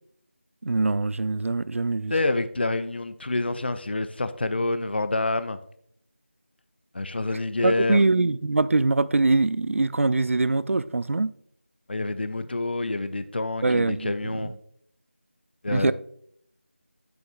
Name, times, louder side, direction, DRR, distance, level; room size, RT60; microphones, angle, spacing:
voice 1, 0.6-2.1 7.6-11.3 13.6-14.5 15.7-15.9, right 3 dB, 85° right, 0.4 m, -23 dB
voice 2, 2.1-5.6 6.9-8.0 11.9-14.5 15.6-15.9, left 2 dB, 50° left, 0.4 m, -27 dB
7.9 x 7.0 x 2.4 m
figure-of-eight pair, 175°, 7 cm